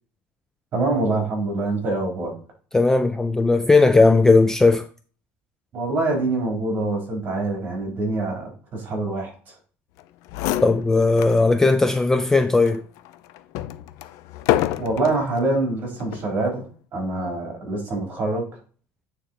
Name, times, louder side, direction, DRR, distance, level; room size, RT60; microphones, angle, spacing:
voice 1, 0.7-2.3 5.7-9.3 14.8-16.6 16.9-18.5, right 2 dB, 35° right, 3.6 m, -25 dB
voice 2, 2.7-4.9 10.6-12.8, left 3 dB, 10° left, 0.3 m, -17 dB
sound 1, 10.0-10.1 10.3-11.4 11.9-12.0 12.6-15.2 16.0-16.4, left 13 dB, 70° left, 0.6 m, -27 dB
9.1 x 3.8 x 4.3 m
cardioid pair, 155°, 6 cm